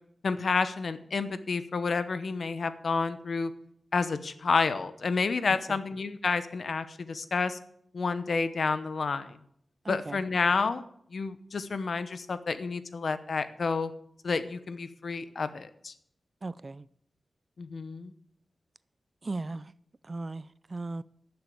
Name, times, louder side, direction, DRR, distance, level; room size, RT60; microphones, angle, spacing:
voice 1, 0.2-3.5 3.9-7.6 7.9-9.4 9.9-13.9 14.2-15.9 17.6-18.1, left 4 dB, 65° left, 12 dB, 0.9 m, -30 dB
voice 2, 9.8-10.2 16.4-16.9 19.2-19.7 20.0-21.0, right 3 dB, 35° right, 18 dB, 0.4 m, -37 dB
12.0 x 7.0 x 7.7 m, 0.69 s
wide cardioid pair, 85°, 0 cm